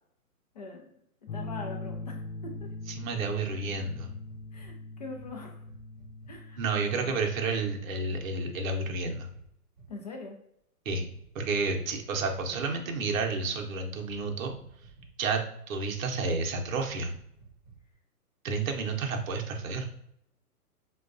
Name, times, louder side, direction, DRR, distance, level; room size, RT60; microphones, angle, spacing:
voice 1, 0.5-0.9 1.3-2.7 4.5-5.6 6.3-7.1 9.9-10.4, left 3 dB, 30° left, 1 dB, 0.4 m, -42 dB
sound 1, 1.3-8.5, left 2 dB, 65° left, 0.6 m, -42 dB
sound 2, 1.8-4.7 5.1-5.3 5.6-6.4 7.1-7.3 7.6-7.8 8.0-8.2 9.3-9.9 11.1-13.4 13.9-15.3 15.8-16.0 16.3-17.9, right 3 dB, 25° right, 0.7 m, -53 dB
voice 2, 3.0-4.1 6.6-9.3 10.9-11.1 11.3-14.6 15.2-17.1 18.4-19.9, right 4 dB, 60° right, 2 dB, 0.7 m, -30 dB
4.4 x 2.3 x 2.5 m, 0.71 s
hypercardioid pair, 150°, 46 cm